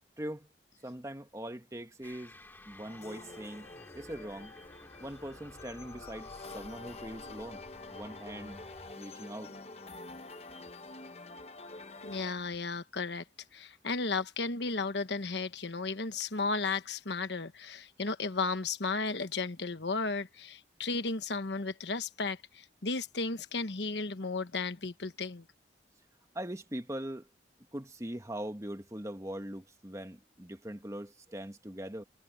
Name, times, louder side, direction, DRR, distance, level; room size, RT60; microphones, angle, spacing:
voice 1, 0.2-0.5 0.8-2.4 2.6-3.7 3.9-4.5 5.0-7.6 7.9-8.6 9.0-9.5 26.3-27.3 27.7-32.0, right 1 dB, 15° right, 1.6 m, -41 dB
sound 1, 2.0-8.9, left 1 dB, 10° left, 2.6 m, -53 dB
sound 2, 2.9-12.3, left 3 dB, 35° left, 1.0 m, -47 dB
voice 2, 12.0-13.2 13.5-25.4, left 3 dB, 75° left, 1.2 m, -34 dB
head